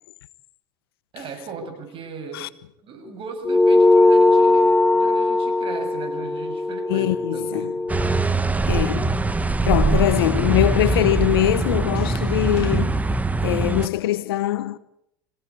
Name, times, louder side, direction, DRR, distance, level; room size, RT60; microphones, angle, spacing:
voice 1, 1.1-2.5 2.8-8.0 9.9-10.0, right 4 dB, 45° right, 6.7 m, -37 dB
sound 1, 3.5-8.3, left 2 dB, 10° left, 0.8 m, -19 dB
voice 2, 6.9-7.7 8.7-9.2 9.7-13.0 13.4-14.8, left 14 dB, 85° left, 1.0 m, -22 dB
sound 2, 7.9-13.9, right 3 dB, 10° right, 1.2 m, -22 dB
25.5 x 17.0 x 8.5 m
hypercardioid pair, 95°, 12 cm